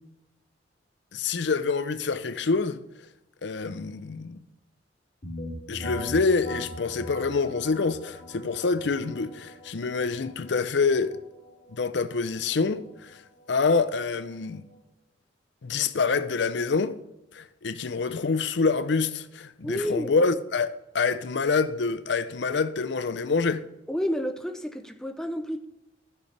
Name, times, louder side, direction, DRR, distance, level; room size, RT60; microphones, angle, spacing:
voice 1, 1.1-2.8 3.4-4.4 5.7-11.2 11.7-13.2 13.5-14.6 15.6-17.0 17.3-23.6, left 4 dB, 75° left, 0.6 m, -26 dB
sound 1, 5.2-14.8, equal, 45° left, 2.7 m, -41 dB
voice 2, 19.6-20.1 23.9-25.6, equal, 5° left, 0.6 m, -30 dB
13.0 x 6.5 x 3.3 m
head